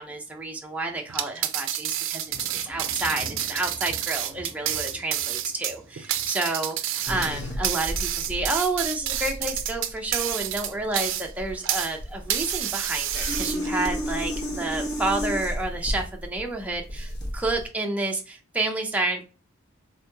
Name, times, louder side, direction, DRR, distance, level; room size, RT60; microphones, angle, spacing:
voice 1, 0.0-2.3 2.6-19.2, right 2 dB, 5° right, 1 dB, 0.5 m, -30 dB
sound 1, 1.1-12.0 12.3-13.9, right 11 dB, 70° right, 0.4 m, -29 dB
Thunder, 2.2-8.7 9.0-9.6 10.1-10.9, left 1 dB, 25° left, 0.7 m, -47 dB
sound 2, 7.1-17.7, equal, 60° left, 1.0 m, -32 dB
3.5 x 2.8 x 2.2 m, 0.33 s
head